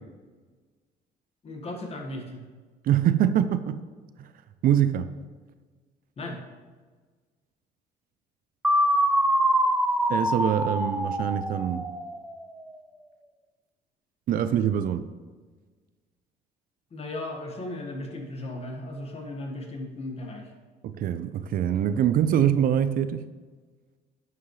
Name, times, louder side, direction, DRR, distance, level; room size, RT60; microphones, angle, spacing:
voice 1, 1.4-2.4 6.2-6.4 16.9-20.5, left 1 dB, 35° left, 2 dB, 1.6 m, -36 dB
voice 2, 2.8-3.8 4.2-4.3 4.6-5.1 10.1-11.8 14.3-15.1 20.8-23.3, right 9 dB, 55° right, 12 dB, 0.5 m, -24 dB
sound 1, 8.6-12.5, equal, 5° right, 0.5 m, -24 dB
11.5 x 7.1 x 3.2 m, 1.4 s
cardioid pair, 110°, 17 cm